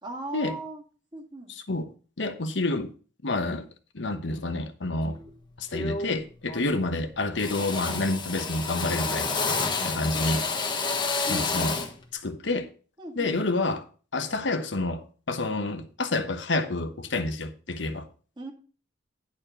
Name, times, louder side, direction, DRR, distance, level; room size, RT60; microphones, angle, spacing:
voice 1, 0.0-0.8 1.1-1.5 5.7-6.1 11.3-11.9 13.0-13.5 18.4-18.5, right 2 dB, 25° right, 2.0 m, -38 dB
voice 2, 1.5-1.9 2.2-2.9 3.2-3.7 3.9-5.2 5.6-9.3 9.8-10.4 11.3-11.8 12.1-12.7 13.2-13.8 14.1-18.1, left 2 dB, 65° left, 1.1 m, -28 dB
Drill, 5.1-5.3 5.7-6.2 6.5-7.0 7.4-12.0, left 4 dB, 25° left, 1.3 m, -30 dB
10.5 x 4.4 x 6.7 m
head